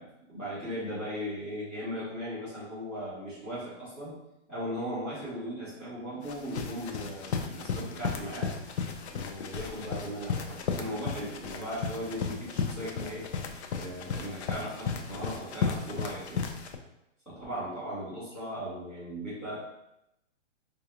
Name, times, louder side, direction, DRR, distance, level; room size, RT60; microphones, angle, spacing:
voice 1, 0.0-4.1 4.5-8.5 8.9-13.2 13.7-16.5 17.3-19.6, equal, ahead, -16 dB, 0.6 m, -38 dB
sound 1, 6.2-16.8, left 5 dB, 65° left, 0.5 m, -35 dB
3.6 x 2.4 x 2.8 m, 0.86 s
hypercardioid pair, 170°, 36 cm